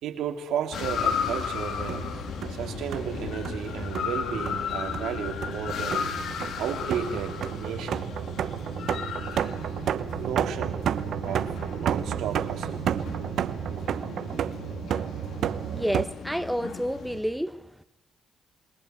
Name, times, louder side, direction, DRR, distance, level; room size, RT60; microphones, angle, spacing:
voice 1, 0.0-2.1 2.5-6.0 6.6-8.1 10.1-10.8 11.2-12.9, right 8 dB, 90° right, 3.0 m, -33 dB
sound 1, 0.7-17.2, left 7 dB, 75° left, 2.9 m, -35 dB
sound 2, 1.6-16.1, right 9 dB, 70° right, 0.8 m, -32 dB
voice 2, 15.6-17.8, equal, ahead, 1.0 m, -30 dB
27.5 x 22.0 x 4.6 m
cardioid pair, 100°, 0 cm